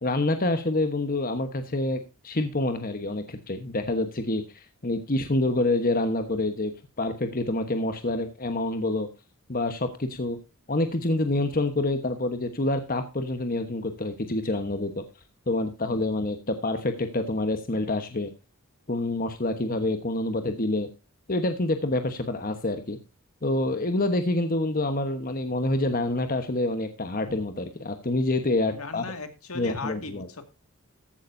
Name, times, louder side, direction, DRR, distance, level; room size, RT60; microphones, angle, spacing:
voice 1, 0.0-6.7 7.0-9.1 9.5-10.4 10.7-15.0 15.5-18.3 18.9-20.9 21.3-23.0 23.4-29.1 29.5-30.3, left 2 dB, 40° left, 8 dB, 1.2 m, -27 dB
voice 2, 28.7-30.5, left 4 dB, 75° left, 8 dB, 2.1 m, -37 dB
14.5 x 11.5 x 2.7 m, 0.27 s
head